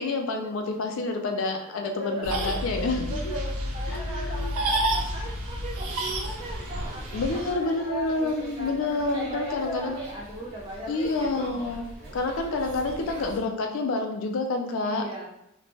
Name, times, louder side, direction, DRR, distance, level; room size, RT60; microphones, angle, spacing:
voice 1, 0.0-3.2 3.9-4.5 7.1-10.0 10.9-11.8 12.1-15.0, left 3 dB, 65° left, 4 dB, 0.3 m, -28 dB
voice 2, 1.6-11.3 11.6-11.7 12.4-12.6 14.8-15.3, right 1 dB, 25° right, -2 dB, 0.3 m, -38 dB
sound 1, 2.2-7.5, right 1 dB, 85° right, 0.5 m, -30 dB
more windy schoolkids, 6.4-13.4, right 1 dB, 45° right, 1.0 m, -43 dB
2.7 x 2.1 x 2.9 m, 0.82 s
head